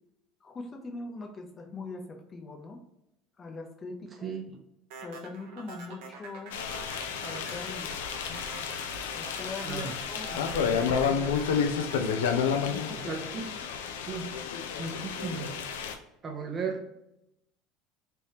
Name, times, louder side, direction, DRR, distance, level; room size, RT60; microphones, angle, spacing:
voice 1, 0.4-2.8 3.4-4.3 5.0-6.6 7.2-8.0 9.1-11.6 12.5-13.1, left 3 dB, 35° left, 2 dB, 0.7 m, -41 dB
sound 1, 4.9-13.3, right 4 dB, 65° right, 0.7 m, -46 dB
sound 2, 6.5-16.0, left 6 dB, 75° left, 0.4 m, -31 dB
voice 2, 13.0-13.4 14.0-14.3 14.8-15.6 16.2-16.8, right 5 dB, 30° right, 2 dB, 0.8 m, -35 dB
3.3 x 2.7 x 3.0 m, 0.86 s
hypercardioid pair, 75°, 0 cm